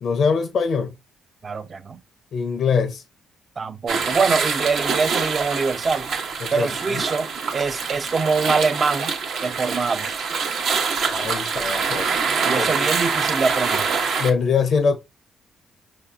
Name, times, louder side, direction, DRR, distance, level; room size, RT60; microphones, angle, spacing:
voice 1, 0.0-0.9 2.3-3.0 6.4-7.0 11.1-12.1 12.5-12.7 14.2-15.0, left 5 dB, 60° left, 0.5 m, -23 dB
voice 2, 1.4-2.0 3.6-6.1 6.5-9.1 9.4-10.1 12.4-13.9, right 4 dB, 35° right, 0.4 m, -24 dB
sound 1, 3.9-14.3, right 5 dB, 70° right, 0.8 m, -25 dB
5.0 x 2.7 x 2.3 m
cardioid pair, 90°, 0 cm